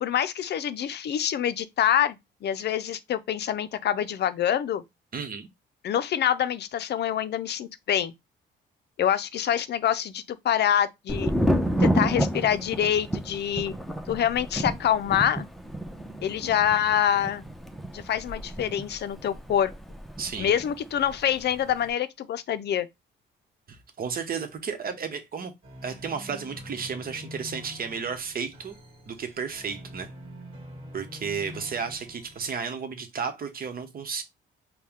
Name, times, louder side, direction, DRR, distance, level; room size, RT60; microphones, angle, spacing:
voice 1, 0.0-4.8 5.8-8.1 9.0-11.3 11.8-13.7 14.1-15.5 16.2-17.4 17.9-19.7 20.4-22.9, left 10 dB, 60° left, 0.5 m, -26 dB
voice 2, 5.1-5.5 20.2-20.5 23.7-25.5 25.8-28.7 29.1-30.1 30.9-34.2, right 6 dB, 50° right, 1.0 m, -33 dB
Thunder, 11.1-20.7 21.0-21.7, equal, ahead, 0.7 m, -29 dB
sound 1, 25.6-32.5, left 1 dB, 25° right, 1.7 m, -45 dB
4.3 x 2.3 x 3.6 m
cardioid pair, 90°, 20 cm